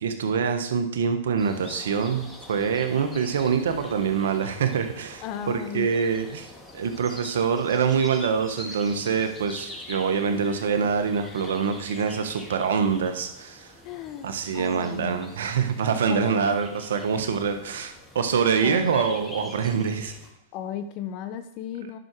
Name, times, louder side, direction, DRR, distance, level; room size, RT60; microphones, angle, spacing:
voice 1, 0.0-6.5 6.7-13.7 14.2-20.1, right 6 dB, 75° right, 7 dB, 1.3 m, -25 dB
sound 1, 1.4-20.3, left 1 dB, 15° left, 2.4 m, -44 dB
voice 2, 5.2-5.9 13.8-15.2 16.1-16.4 18.6-18.9 20.5-22.0, left 9 dB, 45° left, 10 dB, 0.8 m, -35 dB
10.5 x 6.2 x 4.7 m, 0.76 s
hypercardioid pair, 105°, 0 cm